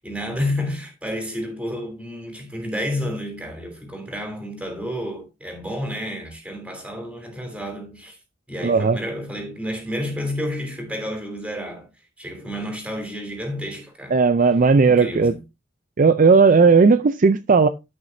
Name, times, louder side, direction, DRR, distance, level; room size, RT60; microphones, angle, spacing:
voice 1, 0.0-8.2 8.5-11.9 12.2-14.2 14.8-15.4, left 1 dB, 5° right, 3.2 m, -30 dB
voice 2, 8.6-9.0 14.1-15.3 16.0-17.7, right 4 dB, 45° right, 0.4 m, -15 dB
13.5 x 6.0 x 2.7 m
head